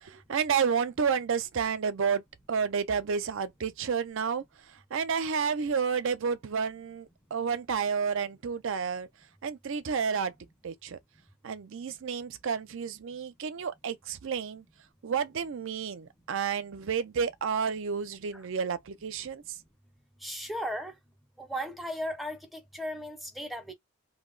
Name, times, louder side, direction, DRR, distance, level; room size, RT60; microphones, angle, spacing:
voice 1, 0.0-2.2 2.5-9.1 9.4-10.3 10.6-11.0 11.4-14.6 15.0-19.6, right 6 dB, 60° right, 0.5 m, -30 dB
voice 2, 20.2-20.9 21.4-23.7, equal, ahead, 0.5 m, -36 dB
2.6 x 2.0 x 3.8 m
head